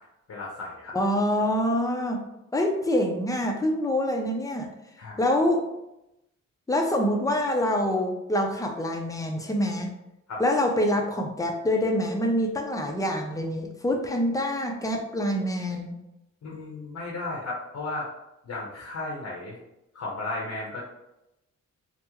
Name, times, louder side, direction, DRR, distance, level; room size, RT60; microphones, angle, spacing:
voice 1, 0.3-0.9 5.0-5.2 10.3-10.4 16.4-18.1 18.4-19.6 19.9-20.8, left 2 dB, 65° left, -3 dB, 0.7 m, -34 dB
voice 2, 0.9-2.2 2.5-4.7 5.2-5.6 6.7-10.0 10.4-15.9, left 1 dB, 10° left, 2 dB, 0.4 m, -25 dB
3.5 x 2.0 x 2.9 m, 0.89 s
wide cardioid pair, 115°, 30 cm